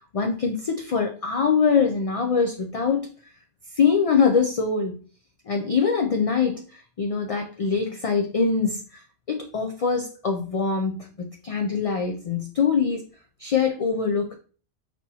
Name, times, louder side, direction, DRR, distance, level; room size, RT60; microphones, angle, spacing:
voice 1, 0.1-3.1 3.7-5.0 5.5-9.0 9.3-13.0 13.4-14.3, left 5 dB, 55° left, 3 dB, 0.4 m, -23 dB
6.1 x 2.9 x 2.7 m, 0.40 s
omnidirectional pair, 1.2 m